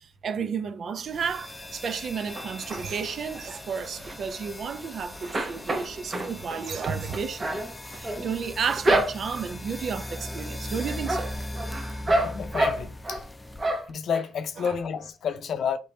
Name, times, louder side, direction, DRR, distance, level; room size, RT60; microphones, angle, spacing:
voice 1, 0.0-11.3 14.6-14.7, right 6 dB, 55° right, 0.6 m, -32 dB
sound 1, 1.1-13.9, left 1 dB, 15° left, 0.5 m, -39 dB
sound 2, 2.4-3.1 3.6-4.9 5.2-9.5 10.0-10.5 10.8-13.2 13.6-14.2 14.6-14.7 15.0-15.1, right 1 dB, 30° right, 1.1 m, -29 dB
voice 2, 12.0-13.2 13.9-15.8, left 7 dB, 65° left, 0.5 m, -30 dB
3.4 x 3.4 x 4.1 m
cardioid pair, 90°, 0 cm